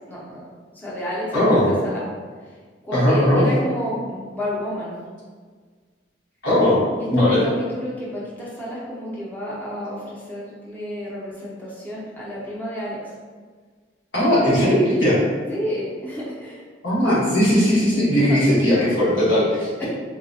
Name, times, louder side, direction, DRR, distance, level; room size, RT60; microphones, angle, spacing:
voice 1, 0.1-0.4 0.7-1.4 1.8-2.0 2.8-4.9 7.0-13.1 15.5-16.6 18.3-18.4 19.8-19.9, equal, 10° left, -7 dB, 0.6 m, -30 dB
voice 2, 1.3-1.7 2.9-3.4 6.4-6.8 7.1-7.4 14.1-15.2 16.8-19.9, equal, 85° left, -8 dB, 1.3 m, -18 dB
3.9 x 2.2 x 2.6 m, 1.6 s
head